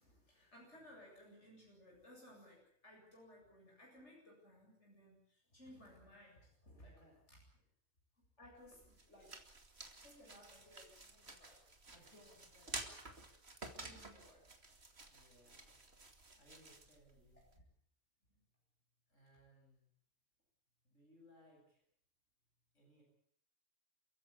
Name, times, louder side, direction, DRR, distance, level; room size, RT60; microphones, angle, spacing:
voice 1, 0.0-7.0 7.3-7.4 8.4-9.4 10.0-12.8 13.7-14.5 17.5-17.6 18.3-18.4, left 1 dB, 65° left, -2 dB, 8.3 m, -61 dB
voice 2, 6.7-7.2 11.9-12.3 15.1-17.4 19.1-19.9 20.8-21.8 22.7-23.0, equal, 80° left, -1 dB, 8.5 m, -67 dB
sound 1, 8.6-17.6, right 3 dB, 55° right, 2.7 m, -52 dB
29.0 x 15.5 x 8.7 m, 0.65 s
omnidirectional pair, 1.3 m